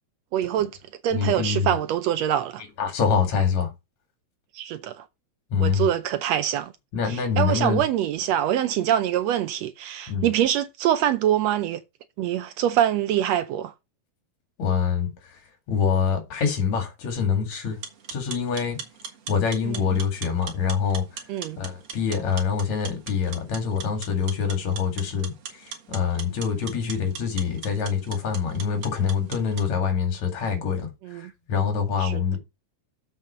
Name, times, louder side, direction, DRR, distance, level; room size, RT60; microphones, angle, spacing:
voice 1, 0.3-0.7 1.0-2.6 4.5-5.1 5.6-6.7 7.1-11.8 12.2-13.7 19.6-20.0 21.3-21.6 31.0-31.3 32.0-32.2, right 11 dB, 75° right, 1.6 m, -24 dB
voice 2, 1.1-1.8 2.8-3.7 5.5-5.9 6.9-7.8 10.1-10.3 14.6-15.4 15.7-17.8 18.1-18.8 19.3-21.2 21.6-32.4, left 6 dB, 70° left, 3.4 m, -25 dB
sound 1, 17.7-29.7, right 7 dB, 60° right, 2.6 m, -40 dB
7.6 x 5.4 x 5.6 m
omnidirectional pair, 3.3 m